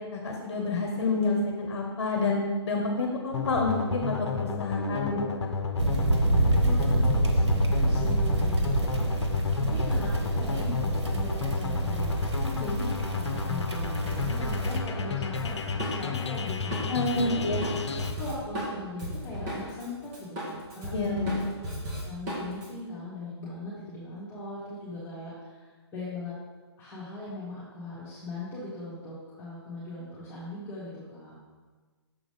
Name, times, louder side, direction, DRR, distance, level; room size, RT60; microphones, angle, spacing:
voice 1, 0.1-5.2 16.9-17.6 20.9-21.4, left 3 dB, 55° left, 1 dB, 1.1 m, -28 dB
sound 1, 3.3-18.1, left 5 dB, 75° left, 0.8 m, -32 dB
voice 2, 4.7-5.1 6.6-17.5 17.9-21.3 22.0-26.4 26.8-31.3, left 2 dB, 15° left, -10 dB, 2.0 m, -39 dB
sound 2, 5.8-14.8, right 1 dB, 85° right, 1.2 m, -27 dB
Drum kit, 15.3-19.9 20.1-22.7, equal, 25° right, 1.9 m, -35 dB
6.9 x 3.8 x 5.2 m, 1.4 s
figure-of-eight pair, 135°, 15 cm